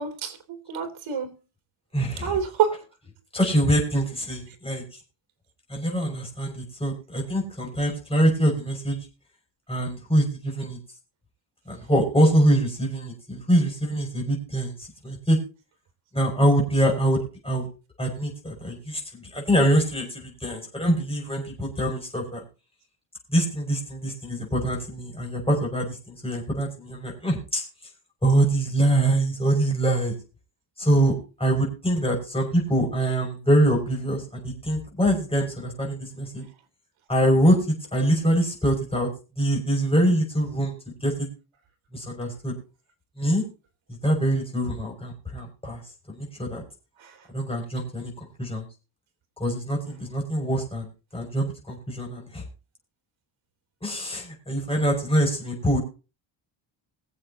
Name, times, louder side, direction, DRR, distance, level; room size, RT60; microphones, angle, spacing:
voice 1, 0.0-1.3 2.2-2.8 47.0-47.2, right 7 dB, 80° right, 4 dB, 3.3 m, -27 dB
voice 2, 1.9-2.3 3.3-4.8 5.7-9.1 9.7-10.8 11.7-15.4 16.1-17.7 18.0-22.4 23.3-27.6 28.2-30.2 30.8-36.4 37.1-39.1 39.4-41.3 41.9-42.6 43.2-43.4 43.9-45.8 46.1-46.6 47.3-48.1 48.4-48.6 49.4-50.9 51.1-52.4 53.8-55.8, right 1 dB, 10° left, -1 dB, 6.2 m, -24 dB
23.0 x 7.8 x 2.9 m, 0.32 s
cardioid pair, 135°, 46 cm